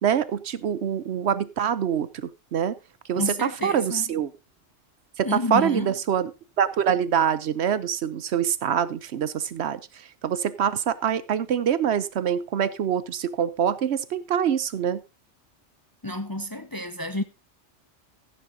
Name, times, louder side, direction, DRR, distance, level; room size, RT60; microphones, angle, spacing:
voice 1, 0.0-2.8 3.1-4.3 5.2-6.3 6.6-15.0, right 8 dB, 65° right, 0.9 m, -25 dB
voice 2, 3.2-4.1 5.2-6.0 16.0-17.2, left 1 dB, 25° left, 0.6 m, -29 dB
15.0 x 10.0 x 2.7 m
omnidirectional pair, 1.2 m